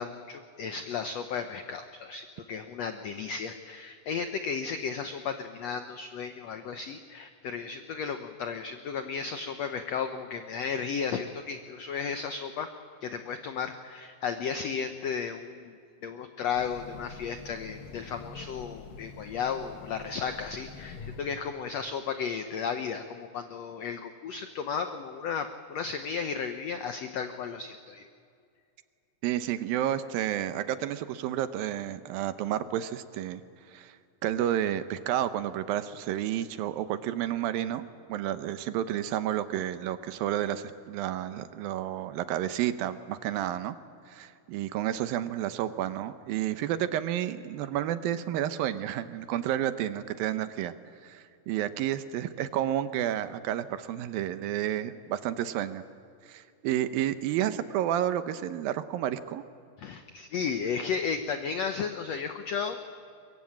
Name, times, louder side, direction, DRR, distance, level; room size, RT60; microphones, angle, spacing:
voice 1, 0.0-12.7 13.0-15.7 16.0-28.1 59.8-62.9, left 6 dB, 90° left, 7 dB, 1.4 m, -34 dB
Train, 16.5-21.5, left 5 dB, 65° left, 3.2 m, -46 dB
voice 2, 29.2-33.4 33.7-34.0 34.2-43.8 44.1-50.7 51.0-55.8 56.3-59.4, right 11 dB, 75° right, 11 dB, 2.6 m, -31 dB
23.0 x 22.5 x 8.8 m, 2.4 s
omnidirectional pair, 4.3 m